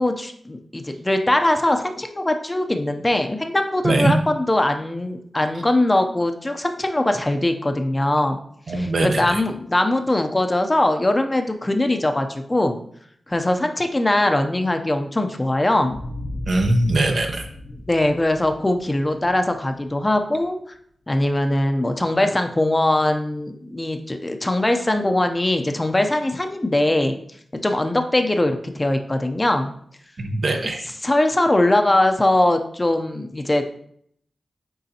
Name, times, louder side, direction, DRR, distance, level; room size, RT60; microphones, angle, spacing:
voice 1, 0.0-8.4 8.8-12.8 13.3-16.0 17.7-20.6 21.1-27.2 27.6-29.7 31.0-33.6, left 1 dB, 20° left, 6 dB, 0.6 m, -21 dB
voice 2, 8.7-9.4 16.5-17.5 30.2-30.9, right 2 dB, 65° right, 3 dB, 1.0 m, -21 dB
sound 1, 15.8-20.4, left 1 dB, 75° left, 0.8 m, -36 dB
9.1 x 3.9 x 2.8 m, 0.65 s
wide cardioid pair, 95°, 0 cm